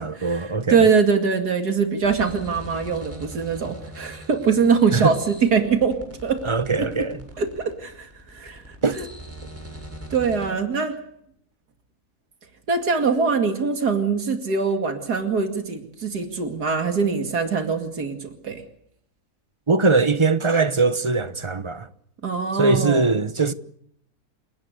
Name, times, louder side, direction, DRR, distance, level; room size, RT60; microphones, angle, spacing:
voice 1, 0.0-0.9 4.9-5.2 6.4-7.2 8.8-9.0 19.7-21.9 22.5-23.5, right 4 dB, 25° right, 0.8 m, -21 dB
voice 2, 0.7-6.4 7.0-7.1 7.4-8.1 8.3-8.6 9.0-9.1 10.1-11.0 12.7-18.6 22.2-23.2, right 5 dB, 90° right, 2.9 m, -23 dB
sound 1, 2.0-10.5, right 1 dB, 10° right, 7.3 m, -41 dB
28.5 x 18.5 x 6.6 m
omnidirectional pair, 1.6 m